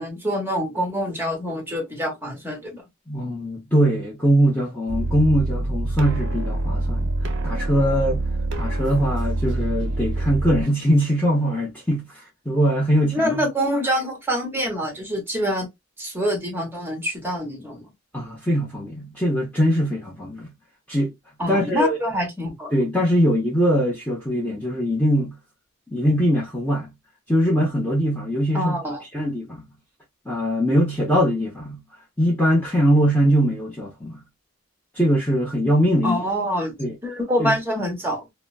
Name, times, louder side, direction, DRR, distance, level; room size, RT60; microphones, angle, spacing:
voice 1, 0.0-2.8 13.1-15.7 16.0-17.8 21.4-22.7 28.5-29.0 36.0-36.7 37.0-38.2, equal, 10° right, 1.1 m, -25 dB
voice 2, 3.1-7.1 7.4-8.2 8.6-13.4 18.1-20.5 20.9-21.1 21.5-22.0 22.7-25.3 25.9-26.9 27.3-28.8 29.1-29.6 30.3-31.8 32.2-34.2 35.0-36.2 36.8-36.9 37.4-37.5, equal, 10° left, 0.8 m, -21 dB
sound 1, 4.9-10.6, right 2 dB, 55° right, 0.6 m, -25 dB
3.9 x 2.1 x 2.3 m
head